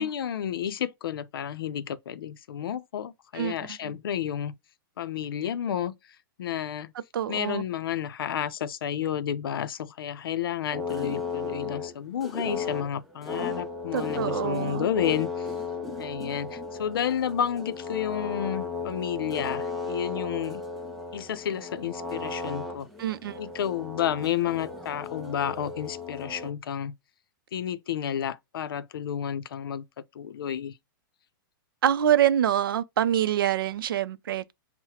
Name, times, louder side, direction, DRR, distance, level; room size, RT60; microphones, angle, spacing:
voice 1, 0.0-4.5 5.0-5.9 6.4-6.9 7.3-15.5 16.0-20.6 21.1-22.9 23.4-26.9 27.5-29.8 30.1-30.7, left 9 dB, 80° left, 0.5 m, -31 dB
voice 2, 3.3-3.9 7.1-7.6 13.9-14.9 23.0-23.4 31.8-34.5, right 11 dB, 75° right, 0.4 m, -26 dB
sound 1, 10.7-26.5, left 4 dB, ahead, 0.4 m, -35 dB
5.6 x 2.1 x 2.8 m
hypercardioid pair, 175°, 12 cm